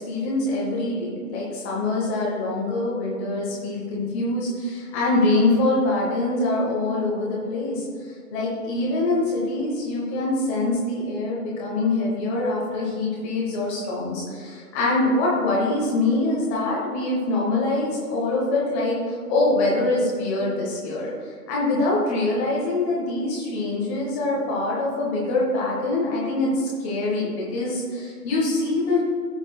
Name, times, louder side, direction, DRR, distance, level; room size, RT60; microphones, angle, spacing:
voice 1, 0.0-7.8 8.3-19.0 19.3-21.1 21.5-29.0, left 2 dB, 10° left, -5 dB, 0.9 m, -24 dB
16.0 x 6.1 x 2.3 m, 2.1 s
figure-of-eight pair, 135°, 47 cm